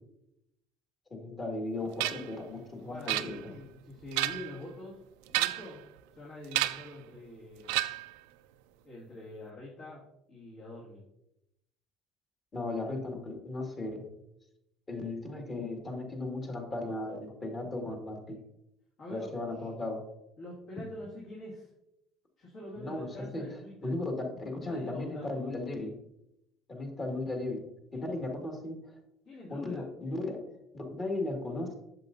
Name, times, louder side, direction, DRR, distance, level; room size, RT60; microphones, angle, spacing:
voice 1, 1.1-3.4 12.5-14.1 14.9-18.4 19.1-20.1 22.8-23.1 23.3-25.9 26.7-27.6 27.9-28.9 29.5-30.4 30.7-31.8, left 2 dB, 35° left, 2 dB, 2.1 m, -36 dB
sound 1, 2.0-2.3 3.1-3.7 4.0-4.6 5.3-5.8 6.5-6.9 7.7-8.2, right 16 dB, 85° right, 0.3 m, -31 dB
voice 2, 2.9-5.0 5.2-5.8 6.1-7.7 8.8-10.0 10.3-11.0 19.0-19.3 19.6-19.7 20.4-21.7 22.4-23.9 24.6-25.4 27.9-28.1 29.2-29.9, left 1 dB, 60° left, -6 dB, 2.3 m, -45 dB
8.2 x 6.8 x 2.7 m, 0.84 s
supercardioid pair, 90°, 0 cm